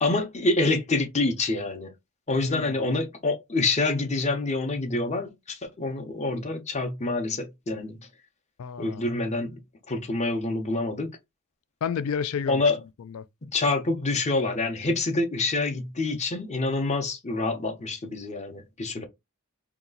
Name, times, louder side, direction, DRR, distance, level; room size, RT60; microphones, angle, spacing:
voice 1, 0.0-1.9 2.3-8.0 8.8-9.6 9.9-11.1 12.5-12.8 13.5-19.1, left 2 dB, 30° left, 0.7 m, -27 dB
voice 2, 2.5-2.8 8.6-9.0 11.8-12.6 13.1-13.2 19.0-19.1, left 7 dB, 70° left, 0.4 m, -30 dB
2.9 x 2.3 x 3.8 m
head